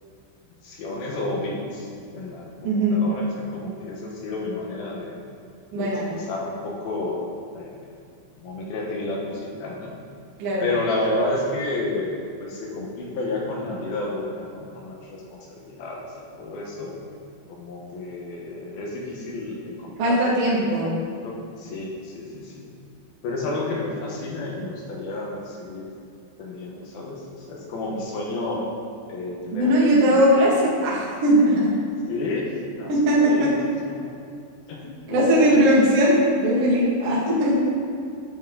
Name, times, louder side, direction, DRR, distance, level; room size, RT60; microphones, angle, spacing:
voice 1, 0.6-1.9 2.1-5.2 5.7-7.8 8.4-10.0 10.6-16.1 16.3-16.9 17.5-20.2 20.5-22.7 23.2-25.9 26.4-28.6 29.1-29.7 30.0-30.2 32.1-32.5 32.8-32.9 33.2-33.5 33.9-34.1 34.7-35.7, left 2 dB, 70° left, -3 dB, 2.3 m, -31 dB
voice 2, 2.6-3.0 5.7-6.1 10.4-10.7 20.0-21.0 29.5-31.6 32.9-33.5 35.1-37.6, equal, 50° right, -7 dB, 2.0 m, -19 dB
9.7 x 8.2 x 3.9 m, 2.4 s
omnidirectional pair, 5.8 m